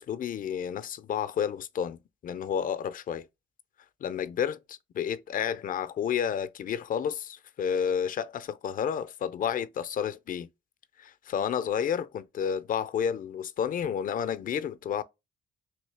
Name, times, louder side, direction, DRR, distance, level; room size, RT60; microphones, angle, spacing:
voice 1, 0.0-3.3 4.0-10.5 11.0-15.0, left 8 dB, 45° left, 0.4 m, -31 dB
3.1 x 2.7 x 3.3 m
cardioid pair, 90°, 20 cm